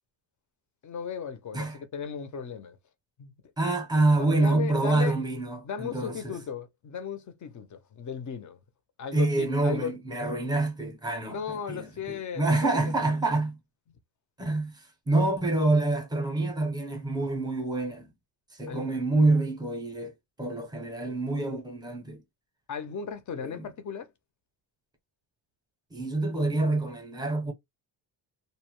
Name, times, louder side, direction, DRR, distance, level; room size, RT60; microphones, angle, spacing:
voice 1, 0.8-2.8 3.2-3.3 4.3-5.2 5.6-8.6 9.0-10.0 11.3-12.9 18.7-18.9 22.7-24.1, left 7 dB, 40° left, 0.5 m, -36 dB
voice 2, 3.6-6.3 9.1-13.6 14.4-18.1 18.5-20.1 20.4-22.2 23.4-23.7 25.9-27.5, right 2 dB, 10° right, 0.7 m, -27 dB
2.6 x 2.1 x 2.9 m
cardioid pair, 160°, 49 cm